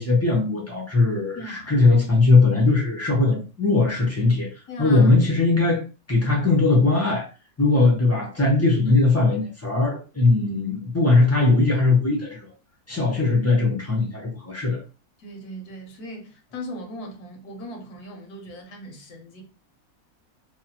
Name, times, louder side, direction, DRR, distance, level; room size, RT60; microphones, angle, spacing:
voice 1, 0.0-4.5 4.8-5.8 6.1-7.3 7.6-12.5 12.9-14.8, left 3 dB, 20° left, 0.4 m, -19 dB
voice 2, 1.4-1.8 4.7-5.1 15.2-19.4, equal, 80° left, 1.3 m, -38 dB
3.0 x 2.1 x 2.8 m
omnidirectional pair, 1.6 m